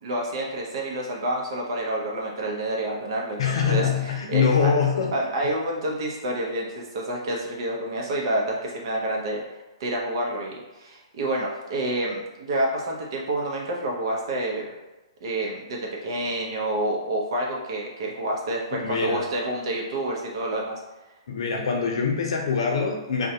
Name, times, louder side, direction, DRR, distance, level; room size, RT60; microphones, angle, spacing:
voice 1, 0.0-4.7 5.1-9.4 9.8-14.7 15.2-20.8, right 1 dB, 55° right, -1 dB, 0.7 m, -28 dB
voice 2, 3.4-5.3 18.8-19.2 21.3-23.3, left 6 dB, 65° left, 1 dB, 0.6 m, -24 dB
2.3 x 2.2 x 2.8 m, 1.1 s
hypercardioid pair, 150°, 3 cm